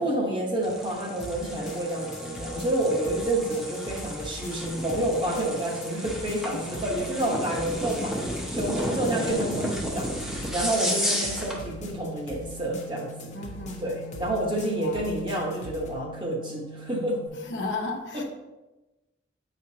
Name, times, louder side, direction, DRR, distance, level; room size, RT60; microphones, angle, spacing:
voice 1, 0.0-8.2 8.5-13.3 13.8-17.2 18.1-18.2, right 1 dB, 25° right, -1 dB, 1.1 m, -29 dB
sound 1, 0.6-11.6, equal, 5° right, 0.8 m, -33 dB
sound 2, 1.2-15.9, left 1 dB, 40° left, 0.9 m, -42 dB
sound 3, 1.3-17.3, right 2 dB, 70° right, 1.4 m, -47 dB
voice 2, 8.7-9.4 10.8-11.1 13.3-14.2 14.8-15.0 17.4-18.2, left 2 dB, 80° left, 1 dB, 0.9 m, -35 dB
7.6 x 5.1 x 2.8 m, 1.1 s
head